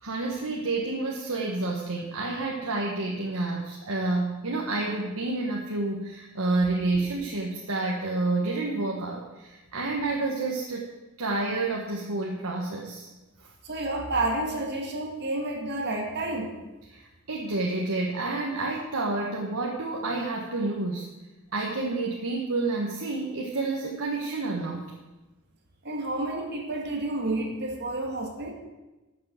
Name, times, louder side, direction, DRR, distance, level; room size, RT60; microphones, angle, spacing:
voice 1, 0.0-10.8 11.2-13.1 16.9-21.1 21.5-24.9, right 2 dB, 90° right, -1 dB, 1.5 m, -29 dB
voice 2, 13.6-16.5 25.8-28.5, right 2 dB, 55° right, 2 dB, 2.0 m, -30 dB
12.0 x 6.8 x 7.7 m, 1.1 s
head